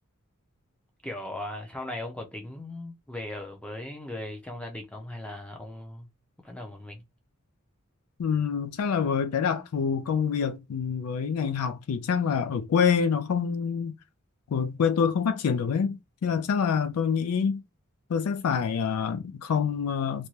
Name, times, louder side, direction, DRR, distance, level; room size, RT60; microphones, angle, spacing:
voice 1, 1.0-6.1 6.4-7.0, left 1 dB, 5° left, 0.5 m, -38 dB
voice 2, 8.2-13.9 14.5-17.6 18.1-20.3, left 6 dB, 85° left, 0.4 m, -26 dB
2.6 x 2.2 x 3.1 m
head